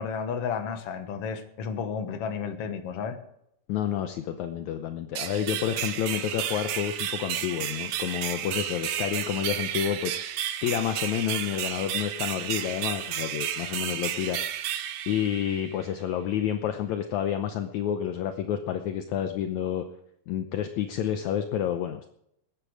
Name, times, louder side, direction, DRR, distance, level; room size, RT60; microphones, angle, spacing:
voice 1, 0.0-3.2, left 6 dB, 55° left, 7 dB, 2.0 m, -32 dB
voice 2, 3.7-14.4 15.1-19.9 20.3-22.1, left 10 dB, 75° left, 7 dB, 1.9 m, -29 dB
sound 1, 5.1-15.9, right 10 dB, 70° right, 1.7 m, -32 dB
20.5 x 10.5 x 4.8 m, 0.75 s
omnidirectional pair, 3.9 m